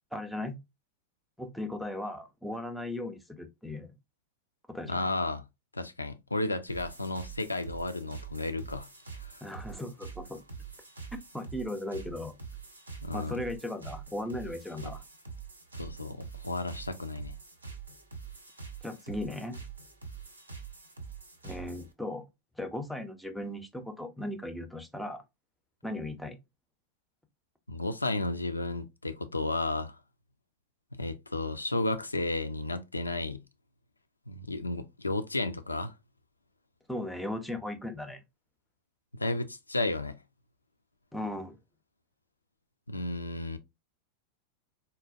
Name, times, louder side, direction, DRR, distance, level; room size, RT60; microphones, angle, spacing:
voice 1, 0.1-0.6 1.4-3.9 4.7-5.1 9.4-10.4 11.1-12.3 13.1-15.0 18.8-19.6 21.4-22.2 22.6-25.2 25.8-26.4 36.9-38.2 41.1-41.6, left 1 dB, ahead, 0.5 m, -37 dB
voice 2, 4.9-5.4 5.7-8.9 9.2-9.4 13.0-13.4 14.8-14.9 15.7-17.4 27.7-30.0 30.9-33.4 34.3-35.9 39.1-40.2 42.9-43.6, left 2 dB, 80° left, 0.4 m, -33 dB
sound 1, 6.7-21.9, right 5 dB, 80° right, 0.6 m, -45 dB
3.9 x 2.1 x 2.4 m
figure-of-eight pair, 90°, 0 cm